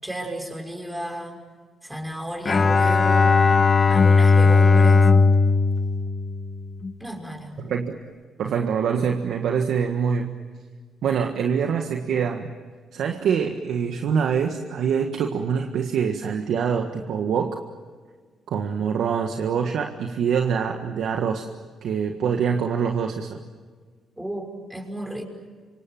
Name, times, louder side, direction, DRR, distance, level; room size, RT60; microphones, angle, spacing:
voice 1, 0.0-1.4 1.8-3.3 3.9-5.1 7.0-7.5 24.2-25.2, equal, 5° right, 2 dB, 6.0 m, -33 dB
Bowed string instrument, 2.4-6.9, left 4 dB, 35° left, 1.5 m, -17 dB
voice 2, 7.6-8.0 8.4-10.3 11.0-12.5 12.9-17.6 18.5-21.5 21.8-23.4, right 7 dB, 70° right, 4 dB, 1.7 m, -25 dB
28.0 x 25.0 x 7.7 m, 1.5 s
cardioid pair, 90°, 0 cm